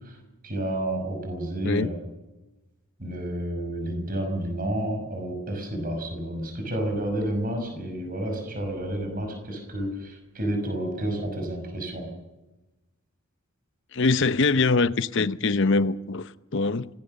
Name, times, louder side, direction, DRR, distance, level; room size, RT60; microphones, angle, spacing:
voice 1, 0.4-1.9 3.0-12.1, right 1 dB, 40° right, 5.7 m, -30 dB
voice 2, 13.9-16.9, left 3 dB, 55° left, 0.8 m, -23 dB
25.0 x 18.5 x 6.6 m
head